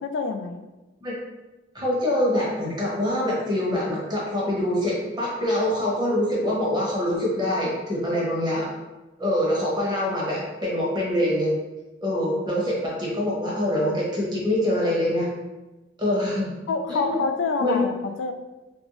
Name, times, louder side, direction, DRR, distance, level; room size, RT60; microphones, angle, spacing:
voice 1, 0.0-0.7 16.7-18.3, left 4 dB, 80° left, 7 dB, 0.3 m, -27 dB
voice 2, 1.7-8.7 9.2-11.5 12.0-15.3 16.0-16.5 16.9-17.2 17.6-17.8, left 1 dB, 25° right, -5 dB, 1.0 m, -24 dB
2.9 x 2.6 x 3.1 m, 1.1 s
head